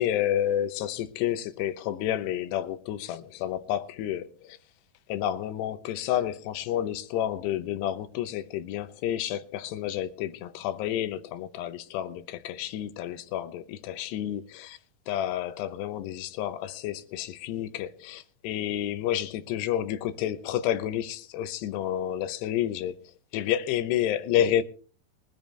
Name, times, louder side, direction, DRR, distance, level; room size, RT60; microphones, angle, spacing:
voice 1, 0.0-4.6 5.1-14.8 15.1-24.6, left 11 dB, 80° left, 3.0 m, -30 dB
22.5 x 10.5 x 3.3 m
omnidirectional pair, 4.8 m